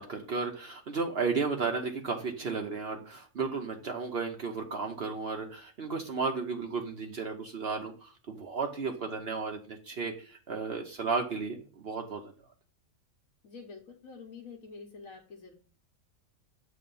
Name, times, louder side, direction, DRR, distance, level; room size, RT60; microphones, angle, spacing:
voice 1, 0.0-12.3, right 4 dB, 50° right, 2 dB, 1.0 m, -34 dB
voice 2, 13.4-15.5, left 4 dB, 75° left, -3 dB, 1.5 m, -47 dB
7.7 x 3.4 x 5.4 m, 0.39 s
omnidirectional pair, 1.4 m